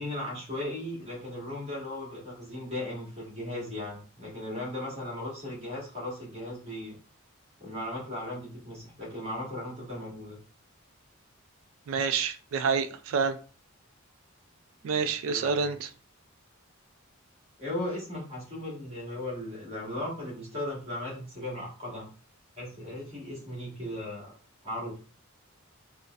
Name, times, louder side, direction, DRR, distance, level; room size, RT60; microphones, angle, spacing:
voice 1, 0.0-6.9 7.6-10.4 14.8-15.7 17.6-22.1 22.6-24.4 24.6-25.0, left 1 dB, 30° right, 1.4 m, -37 dB
voice 2, 11.9-13.4 14.8-15.9, right 5 dB, 70° right, 0.3 m, -28 dB
3.9 x 2.0 x 2.3 m
head